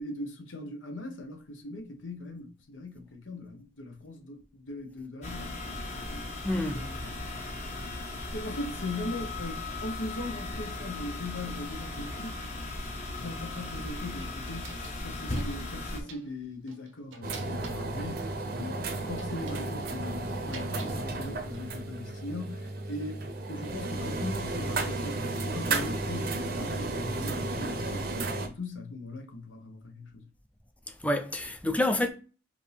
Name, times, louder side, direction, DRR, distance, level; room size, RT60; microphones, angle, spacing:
voice 1, 0.0-7.6 8.3-12.4 13.2-30.3, left 2 dB, 80° left, 1.0 m, -40 dB
sound 1, 5.2-16.0, left 2 dB, 40° left, 1.0 m, -37 dB
voice 2, 6.4-6.9 31.0-32.1, left 1 dB, 5° left, 0.5 m, -28 dB
sound 2, 13.9-15.1 15.3-16.3 16.7-18.2 18.9-21.0 21.3-21.8, right 4 dB, 90° right, 0.9 m, -49 dB
sound 3, 17.2-28.5, right 2 dB, 50° right, 0.7 m, -33 dB
5.1 x 2.7 x 3.4 m
head